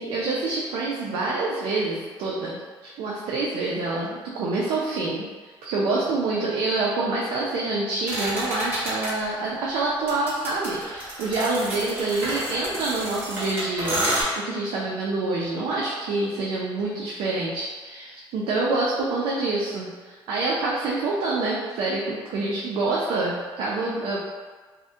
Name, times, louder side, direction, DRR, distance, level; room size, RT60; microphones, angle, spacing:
voice 1, 0.0-24.2, right 3 dB, 80° right, -4 dB, 0.4 m, -27 dB
sound 1, 8.1-9.1 10.1-14.2, right 1 dB, 20° right, 0.9 m, -29 dB
2.3 x 2.1 x 2.6 m, 1.4 s
cardioid pair, 115°, 9 cm